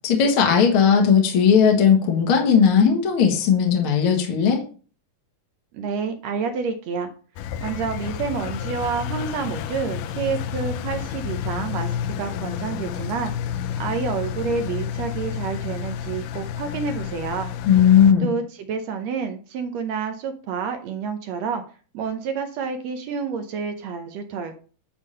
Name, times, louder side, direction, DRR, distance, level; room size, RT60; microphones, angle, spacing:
voice 1, 0.0-4.6 17.7-18.3, left 7 dB, 50° left, 1 dB, 1.8 m, -17 dB
voice 2, 5.7-7.1 7.6-17.5 18.2-21.6 21.9-24.5, right 5 dB, 80° right, 7 dB, 1.6 m, -29 dB
Engine, 7.4-18.1, left 9 dB, 85° left, 2.2 m, -30 dB
10.0 x 3.6 x 5.6 m, 0.39 s
omnidirectional pair, 3.9 m